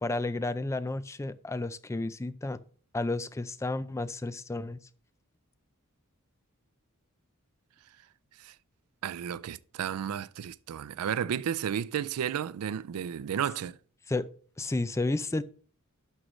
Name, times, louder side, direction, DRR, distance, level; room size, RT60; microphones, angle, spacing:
voice 1, 0.0-2.6 2.9-4.8 14.1-14.3 14.6-15.4, left 2 dB, 15° left, 0.3 m, -31 dB
voice 2, 9.0-13.8, right 9 dB, 90° right, 0.4 m, -33 dB
11.0 x 6.3 x 3.1 m
head